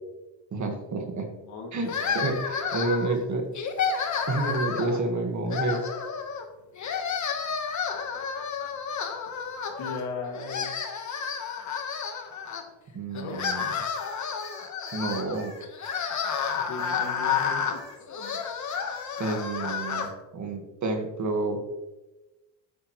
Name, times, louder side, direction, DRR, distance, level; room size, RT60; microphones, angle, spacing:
voice 1, 0.5-1.3 1.7-3.5 4.3-5.9 12.9-13.6 14.9-15.5 19.2-21.6, right 3 dB, 40° right, 4 dB, 1.8 m, -29 dB
voice 2, 1.4-2.5 9.8-10.7 13.1-13.4 16.5-17.7, left 4 dB, 90° left, 1 dB, 2.6 m, -37 dB
sound 1, 1.9-3.2 3.5-5.0 5.5-6.4 6.8-10.0 10.3-12.6 13.1-20.1, left 6 dB, 40° left, 1.3 m, -31 dB
sound 2, 13.9-18.0 18.2-19.4, left 2 dB, 15° left, 2.8 m, -47 dB
10.0 x 9.0 x 3.2 m, 1.1 s
cardioid pair, 125°, 46 cm